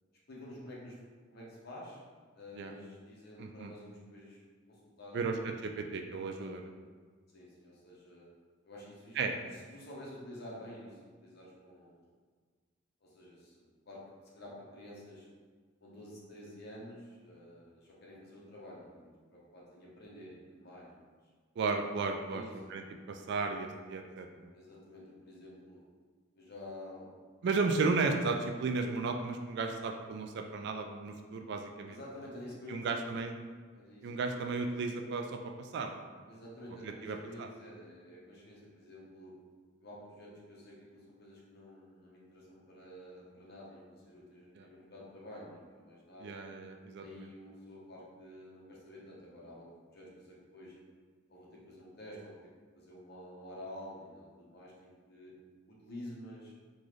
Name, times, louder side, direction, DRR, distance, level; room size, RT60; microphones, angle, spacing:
voice 1, 0.3-1.0 1.3-2.0 2.3-5.3 6.4-6.7 7.3-8.3 8.6-9.2 9.7-12.0 13.0-15.3 15.8-21.1 22.3-22.7 24.5-25.8 26.4-27.1 31.9-33.1 33.7-34.3 36.3-39.4 39.8-46.4 47.0-50.8 51.3-55.4 55.7-56.5, left 1 dB, 55° left, -4 dB, 0.9 m, -50 dB
voice 2, 3.4-3.7 5.1-5.4 5.6-6.7 9.2-9.3 21.6-22.4 22.7-24.5 27.4-32.0 32.7-33.3 34.0-36.0 36.8-37.5 44.6-44.7 46.2-47.0, right 4 dB, 55° right, 5 dB, 0.3 m, -34 dB
3.8 x 2.4 x 3.1 m, 1.5 s
head